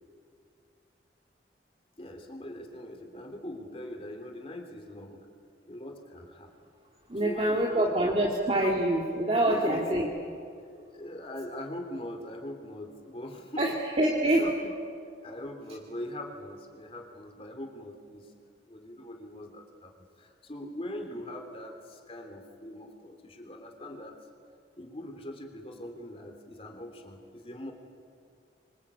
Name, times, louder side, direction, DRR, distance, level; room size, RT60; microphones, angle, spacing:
voice 1, 2.0-5.3 5.6-6.5 7.2-7.8 9.2-9.9 10.6-13.7 14.2-14.5 15.2-18.3 18.6-24.2 24.8-27.7, left 1 dB, 30° left, 4 dB, 3.2 m, -41 dB
voice 2, 7.1-10.1 13.6-14.5, right 1 dB, 35° right, -2 dB, 2.2 m, -26 dB
26.0 x 26.0 x 8.4 m, 2.3 s
head